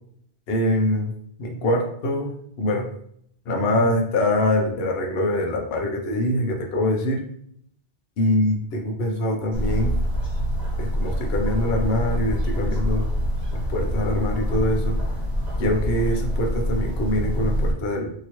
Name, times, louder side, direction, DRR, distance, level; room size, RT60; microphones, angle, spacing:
voice 1, 0.5-1.1 1.4-2.9 3.5-7.2 8.2-9.9 10.8-13.0 13.5-15.0 15.6-18.1, left 1 dB, 70° left, 2 dB, 0.8 m, -24 dB
sound 1, 9.5-17.7, equal, 45° right, 1.1 m, -25 dB
2.8 x 2.8 x 2.9 m, 0.67 s
omnidirectional pair, 1.1 m